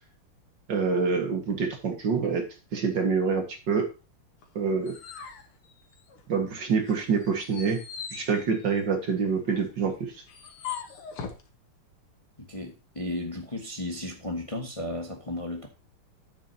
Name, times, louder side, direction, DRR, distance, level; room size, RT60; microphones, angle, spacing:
voice 1, 0.7-2.4 2.7-3.9 4.6-5.0 6.3-7.8 8.1-10.2, right 5 dB, 55° right, 4 dB, 2.3 m, -26 dB
sound 1, 4.4-6.4 6.8-11.5, left 7 dB, 85° left, 2.4 m, -41 dB
voice 2, 12.4-15.7, left 1 dB, 15° left, 2 dB, 1.5 m, -34 dB
10.0 x 8.5 x 2.9 m, 0.31 s
omnidirectional pair, 2.3 m